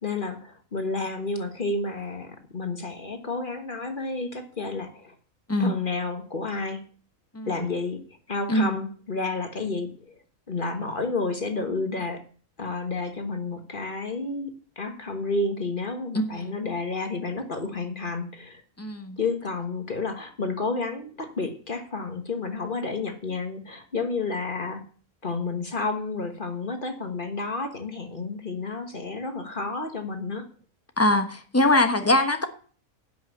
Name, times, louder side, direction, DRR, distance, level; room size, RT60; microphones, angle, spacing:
voice 1, 0.0-5.1 5.6-6.8 7.5-8.0 8.3-9.9 10.5-12.2 12.6-14.5 14.8-18.6 19.2-24.8 25.2-30.4, left 3 dB, 40° left, 6 dB, 1.5 m, -30 dB
voice 2, 16.1-16.6 18.8-19.2 31.0-32.5, left 1 dB, 10° left, 7 dB, 1.1 m, -23 dB
10.5 x 6.3 x 8.2 m, 0.42 s
omnidirectional pair, 1.4 m